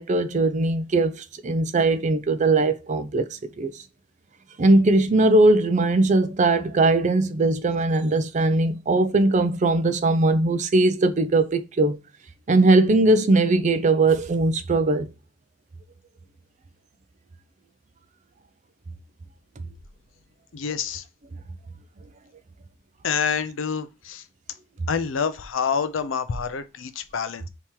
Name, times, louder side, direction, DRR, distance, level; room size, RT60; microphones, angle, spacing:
voice 1, 0.0-3.8 4.6-12.0 12.5-15.1, right 2 dB, 35° right, 0.4 m, -20 dB
voice 2, 20.5-21.0 23.0-24.2 24.9-27.5, left 6 dB, 70° left, 0.5 m, -27 dB
3.5 x 2.9 x 4.4 m
head